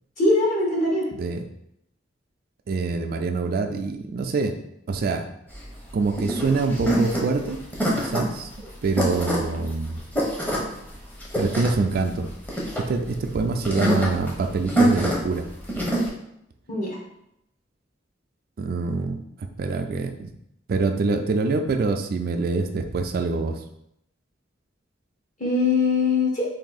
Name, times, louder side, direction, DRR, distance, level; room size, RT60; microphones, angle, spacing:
voice 1, 0.2-1.0 16.7-16.9 25.4-26.4, left 3 dB, 45° left, -4 dB, 1.3 m, -21 dB
voice 2, 1.1-1.5 2.7-4.6 4.9-5.2 5.9-7.6 7.9-8.5 8.8-10.0 11.3-12.3 12.8-15.5 18.6-19.2 19.6-20.3 20.7-23.6, right 3 dB, 55° right, 6 dB, 0.3 m, -25 dB
sound 1, 5.5-16.1, right 1 dB, 10° left, 0.8 m, -26 dB
3.5 x 2.6 x 4.0 m, 0.77 s
head